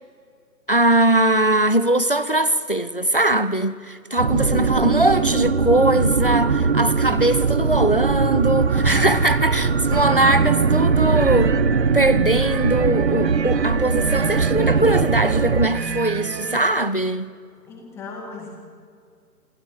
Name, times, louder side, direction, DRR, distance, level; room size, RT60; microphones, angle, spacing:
voice 1, 0.7-11.6 11.9-17.3, right 1 dB, 35° left, 0.4 m, -21 dB
sound 1, 4.2-15.7, right 5 dB, 40° right, 0.8 m, -20 dB
voice 2, 8.7-9.2 17.7-18.5, left 4 dB, 5° left, 1.9 m, -35 dB
sound 2, 9.9-16.6, right 7 dB, 80° right, 0.9 m, -29 dB
27.0 x 15.5 x 6.3 m
figure-of-eight pair, 160°, 49 cm